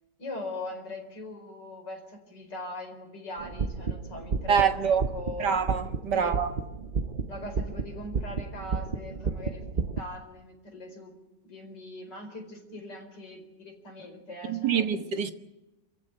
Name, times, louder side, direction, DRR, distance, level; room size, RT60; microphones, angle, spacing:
voice 1, 0.2-4.8 5.1-5.6 6.1-6.4 7.3-9.6 10.0-11.1 11.4-15.1, left 2 dB, 90° left, 5.3 m, -41 dB
sound 1, 3.4-10.0, right 4 dB, 40° right, 0.9 m, -32 dB
voice 2, 4.5-5.0 5.4-6.5 14.5-15.3, right 7 dB, 75° right, 2.1 m, -25 dB
28.0 x 15.0 x 9.2 m
omnidirectional pair, 1.8 m